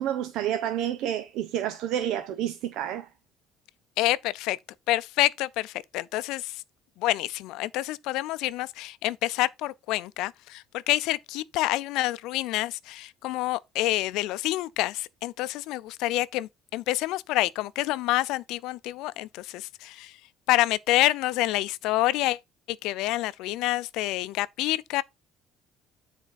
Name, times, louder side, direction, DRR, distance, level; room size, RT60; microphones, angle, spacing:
voice 1, 0.0-3.1, right 11 dB, 70° right, 0.8 m, -29 dB
voice 2, 4.0-4.6 4.9-6.6 7.0-20.2 20.5-22.4 22.7-25.0, left 17 dB, 75° left, 0.5 m, -27 dB
9.9 x 4.4 x 4.2 m
cardioid pair, 155°, 0 cm